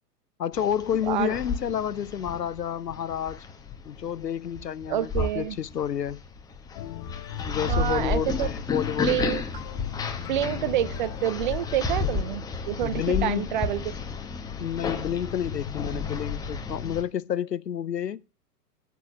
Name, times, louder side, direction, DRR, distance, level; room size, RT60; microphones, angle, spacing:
voice 1, 0.4-3.4 3.9-6.2 7.4-9.4 12.8-13.5 14.6-18.2, left 9 dB, 90° left, 0.6 m, -30 dB
sound 1, 0.5-17.0, left 4 dB, 10° left, 0.9 m, -32 dB
voice 2, 1.0-1.4 4.9-5.6 7.7-8.5 9.0-9.4 10.3-13.9, right 12 dB, 30° right, 0.5 m, -28 dB
sound 2, 6.7-11.8, left 12 dB, 25° left, 0.6 m, -39 dB
13.5 x 4.7 x 7.0 m
figure-of-eight pair, 115°, 48 cm